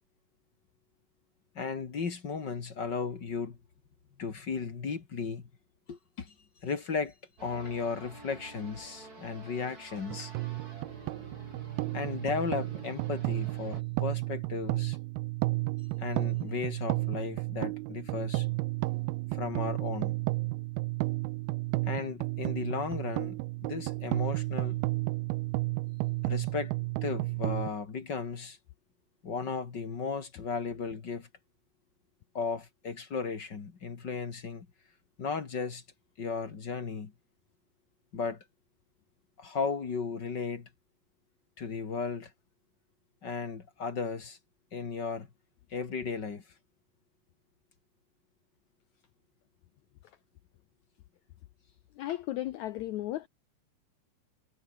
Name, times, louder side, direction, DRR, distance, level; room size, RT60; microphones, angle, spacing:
voice 1, 1.6-3.6 4.2-5.5 5.9-6.3 6.6-7.1 7.4-10.3 11.9-15.0 16.0-18.5 19.3-20.2 21.8-24.8 26.3-26.7 27.0-28.6 29.2-31.3 32.3-34.7 35.2-35.8 36.2-37.1 38.1-38.4 39.4-40.7 41.6-42.3 43.2-44.4 44.7-45.3 45.7-46.4, left 5 dB, 35° left, 2.1 m, -35 dB
sound 1, 7.4-13.8, right 2 dB, 25° right, 5.6 m, -49 dB
sound 2, 10.1-27.7, right 22 dB, 85° right, 2.5 m, -32 dB
voice 2, 52.0-53.3, left 14 dB, 85° left, 1.6 m, -35 dB
omnidirectional pair, 4.3 m